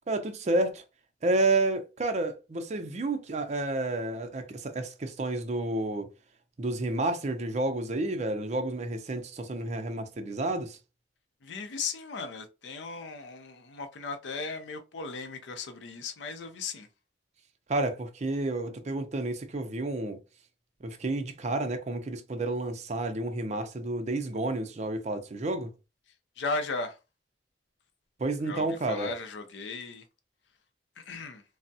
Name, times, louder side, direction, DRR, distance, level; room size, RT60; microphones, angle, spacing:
voice 1, 0.1-0.8 1.2-6.1 6.6-10.8 17.7-20.2 20.8-25.7 28.2-29.1, right 2 dB, 40° right, 0.5 m, -30 dB
voice 2, 11.4-16.9 26.4-27.0 28.4-30.0 31.0-31.4, left 4 dB, 80° left, 0.5 m, -36 dB
3.3 x 2.0 x 2.6 m
head